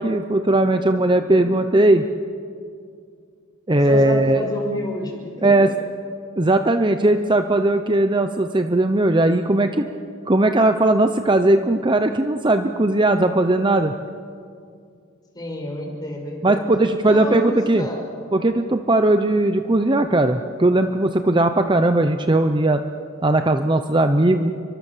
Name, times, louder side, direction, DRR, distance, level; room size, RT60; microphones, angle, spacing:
voice 1, 0.0-2.1 3.7-4.4 5.4-5.7 6.4-9.9 10.3-13.9 16.4-17.9 18.3-22.8 23.2-24.5, right 2 dB, 20° right, 8 dB, 0.8 m, -18 dB
voice 2, 3.8-5.7 15.3-16.7 17.0-18.0, left 1 dB, 20° left, 0 dB, 6.0 m, -29 dB
30.0 x 24.5 x 7.4 m, 2.3 s
head